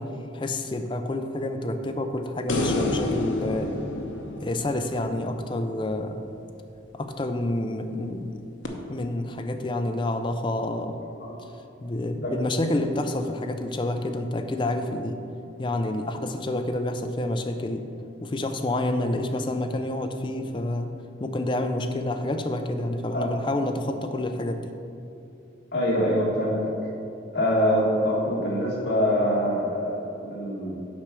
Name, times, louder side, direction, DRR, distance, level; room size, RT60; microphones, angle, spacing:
voice 1, 0.0-3.8 4.4-6.2 6.9-8.4 8.9-11.0 11.4-11.5 11.8-15.2 15.6-17.9 18.2-24.7, left 1 dB, 25° left, 6 dB, 0.4 m, -28 dB
sound 1, 2.5-5.8 8.6-8.7, left 2 dB, 80° left, 0.8 m, -29 dB
voice 2, 25.7-26.7 27.3-30.8, equal, 60° left, -4 dB, 1.9 m, -24 dB
7.5 x 4.9 x 6.1 m, 2.7 s
head